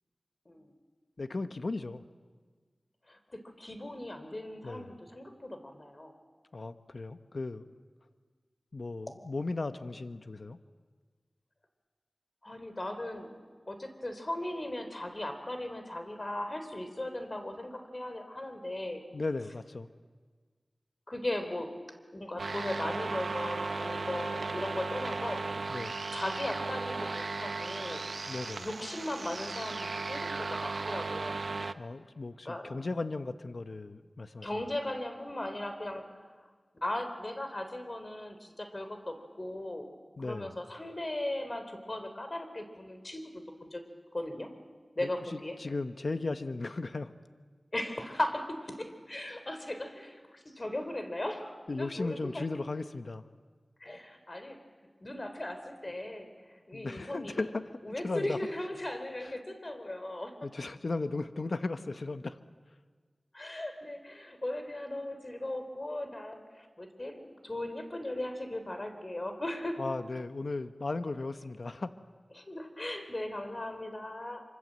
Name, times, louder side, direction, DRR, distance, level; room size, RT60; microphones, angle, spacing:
voice 1, 1.2-2.0 4.6-5.0 6.5-7.7 8.7-10.6 19.1-19.9 25.7-25.9 28.3-28.7 31.8-34.5 40.2-40.5 45.0-45.1 45.6-47.1 51.7-53.3 56.7-57.7 58.0-58.4 59.2-59.3 60.4-62.4 69.8-71.9, left 3 dB, 70° left, 10 dB, 0.9 m, -36 dB
voice 2, 3.1-6.1 12.4-13.3 13.7-19.0 21.1-21.7 22.1-25.4 26.1-28.1 28.6-31.4 32.5-32.7 34.4-36.3 36.8-39.9 40.2-43.8 44.1-44.5 45.0-45.6 47.7-52.5 53.8-54.6 55.0-57.5 57.8-60.5 63.3-69.8 72.4-74.4, left 1 dB, 40° left, 7 dB, 3.7 m, -38 dB
sound 1, 22.4-31.7, right 3 dB, 85° right, 0.7 m, -36 dB
26.0 x 25.5 x 7.6 m, 1.5 s
wide cardioid pair, 50°, 0 cm